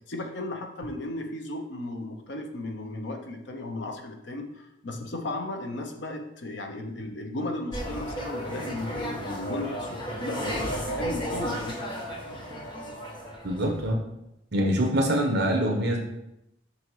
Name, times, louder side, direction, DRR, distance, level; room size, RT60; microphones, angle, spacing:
voice 1, 0.1-11.8, left 2 dB, 60° left, 4 dB, 0.8 m, -35 dB
sound 1, 7.7-13.9, equal, 25° left, 1.2 m, -33 dB
voice 2, 13.4-14.0 14.5-16.0, equal, 55° right, 1 dB, 1.3 m, -24 dB
5.8 x 4.0 x 4.6 m, 0.86 s
head